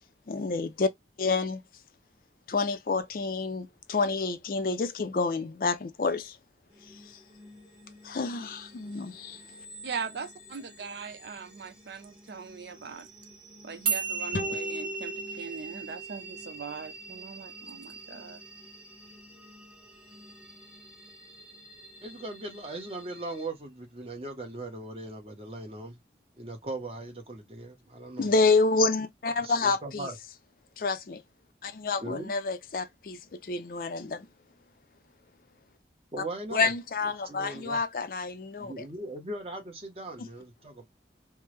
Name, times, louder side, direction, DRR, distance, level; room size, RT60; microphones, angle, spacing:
voice 1, 0.3-0.9 1.2-1.6 2.5-6.4 8.0-9.4 28.2-30.1 30.8-31.2 31.6-34.3 36.5-38.9 40.2-40.3, left 4 dB, 50° left, 0.4 m, -28 dB
sound 1, 6.7-23.5, equal, 5° right, 0.9 m, -51 dB
voice 2, 9.8-13.1 13.6-18.4, right 5 dB, 75° right, 0.5 m, -40 dB
sound 2, 13.9-20.4, right 5 dB, 50° right, 1.2 m, -36 dB
sound 3, 14.3-17.7, equal, 85° left, 0.8 m, -40 dB
voice 3, 22.0-26.0 26.4-28.3 29.4-30.2 32.0-32.3 36.1-36.7 37.2-37.8 38.6-40.9, right 2 dB, 35° right, 0.9 m, -39 dB
3.3 x 2.0 x 3.1 m
head